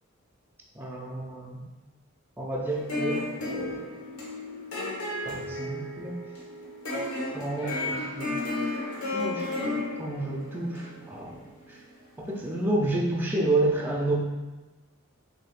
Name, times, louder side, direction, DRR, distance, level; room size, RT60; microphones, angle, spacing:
voice 1, 0.7-1.6 2.4-3.9 5.2-6.1 7.3-8.4 9.1-11.8 12.2-14.1, right 2 dB, 10° right, -3 dB, 0.4 m, -30 dB
sound 1, 2.7-11.9, left 2 dB, 85° left, 1.3 m, -33 dB
6.2 x 2.7 x 2.4 m, 1.1 s
head